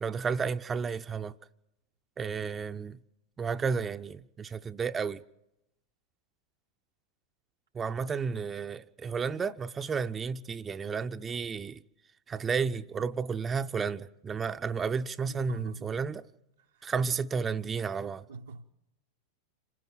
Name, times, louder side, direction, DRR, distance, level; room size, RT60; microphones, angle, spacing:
voice 1, 0.0-1.3 2.2-3.0 3.4-5.2 7.7-11.8 12.3-16.3 16.8-18.2, right 5 dB, 20° right, 0.7 m, -32 dB
voice 2, 15.3-16.0 16.7-16.9 18.3-18.6, right 3 dB, 70° right, 1.0 m, -45 dB
27.0 x 16.0 x 7.8 m
figure-of-eight pair, 90°, 0 cm